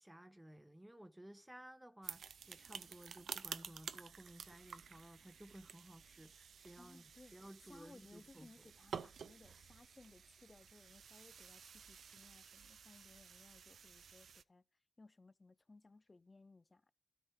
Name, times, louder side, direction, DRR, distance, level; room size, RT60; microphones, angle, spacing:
voice 1, 0.0-8.7, right 1 dB, 10° right, 0.7 m, -57 dB
sound 1, 2.0-14.4, right 7 dB, 80° right, 0.3 m, -52 dB
voice 2, 6.8-7.4 7.7-14.6 15.0-16.9, left 3 dB, 40° left, 0.5 m, -62 dB
13.0 x 4.7 x 4.7 m
cardioid pair, 45°, 0 cm